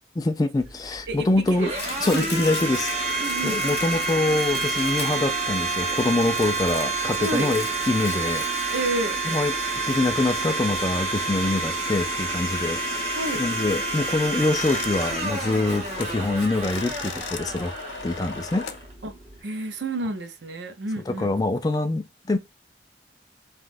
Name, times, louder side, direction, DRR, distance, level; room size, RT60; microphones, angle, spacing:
voice 1, 0.2-1.7 2.0-2.9 3.4-8.4 9.2-9.6 9.9-17.7 18.0-18.7 21.1-22.4, left 2 dB, 20° left, 0.3 m, -25 dB
Domestic sounds home sounds, 0.6-19.4, right 3 dB, 35° right, 1.1 m, -29 dB
voice 2, 1.1-1.7 2.1-2.3 3.2-3.6 7.2-7.5 8.7-9.2 13.2-13.4 19.0-19.1 19.4-21.3, right 2 dB, 75° right, 0.6 m, -30 dB
Domestic sounds home sounds 2, 1.8-12.0 13.2-14.9 15.3-17.1, left 5 dB, 60° left, 1.4 m, -40 dB
sound 1, 14.5-16.2 16.5-18.8, left 6 dB, 85° left, 0.4 m, -38 dB
3.5 x 2.4 x 2.5 m
head